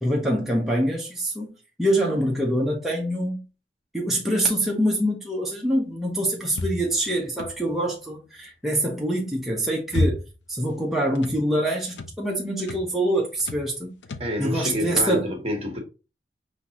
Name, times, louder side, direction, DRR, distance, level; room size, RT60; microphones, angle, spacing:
voice 1, 0.0-1.5 1.8-3.4 3.9-10.2 10.5-13.9 14.4-15.3, right 1 dB, ahead, 0.8 m, -25 dB
sound 1, 6.5-7.9 9.4-10.5 10.8-11.4 11.9-12.2 12.6-12.9 13.4-13.7 14.0-14.4, left 1 dB, 90° left, 0.6 m, -30 dB
voice 2, 14.2-15.8, left 1 dB, 35° right, 1.4 m, -28 dB
5.7 x 2.9 x 2.9 m
head